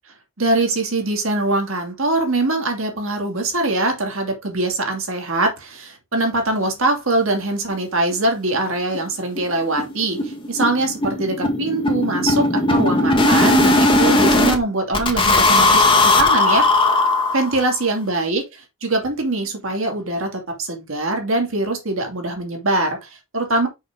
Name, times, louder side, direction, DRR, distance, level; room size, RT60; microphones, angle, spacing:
voice 1, 0.4-16.7 17.3-18.4 18.8-23.7, right 2 dB, 65° right, 2.6 m, -22 dB
sound 1, 7.7-7.8 8.1-8.2 8.5-8.6 8.9-9.1 9.4-14.6 14.9-17.7, left 2 dB, 25° left, 1.6 m, -17 dB
6.4 x 6.3 x 3.7 m
head